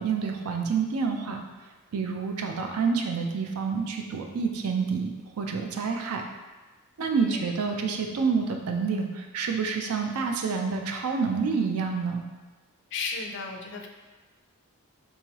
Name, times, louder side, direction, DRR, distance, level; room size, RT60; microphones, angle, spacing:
voice 1, 0.0-1.4 1.9-6.2 7.0-12.2, right 5 dB, 85° right, 3 dB, 0.4 m, -28 dB
voice 2, 7.2-7.6 12.9-13.9, left 4 dB, 55° left, 2 dB, 0.4 m, -34 dB
3.5 x 3.1 x 2.9 m, 1.2 s
head